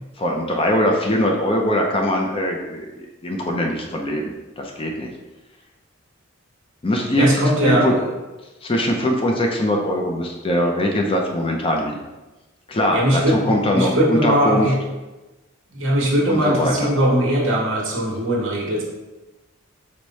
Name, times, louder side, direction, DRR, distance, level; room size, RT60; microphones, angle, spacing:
voice 1, 0.2-4.2 4.6-5.1 6.8-7.3 7.6-7.9 8.6-12.0 12.7-14.7 16.3-16.9, left 1 dB, 25° left, 1 dB, 0.4 m, -21 dB
voice 2, 7.1-8.1 12.9-14.8 15.7-18.8, equal, 65° right, -3 dB, 1.1 m, -20 dB
4.7 x 2.1 x 4.0 m, 1.1 s
head